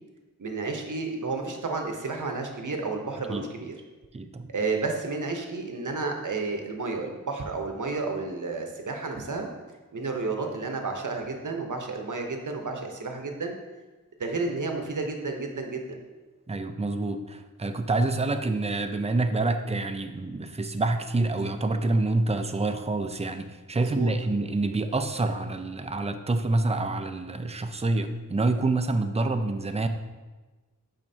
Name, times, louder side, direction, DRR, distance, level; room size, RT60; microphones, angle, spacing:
voice 1, 0.4-3.7 4.5-9.5 9.9-13.5 14.2-16.0 23.7-24.1, right 3 dB, 65° right, 3 dB, 0.8 m, -31 dB
voice 2, 4.1-4.5 16.5-29.9, right 2 dB, 20° right, 8 dB, 0.4 m, -27 dB
7.4 x 4.9 x 2.7 m, 1.2 s
wide cardioid pair, 55°, 34 cm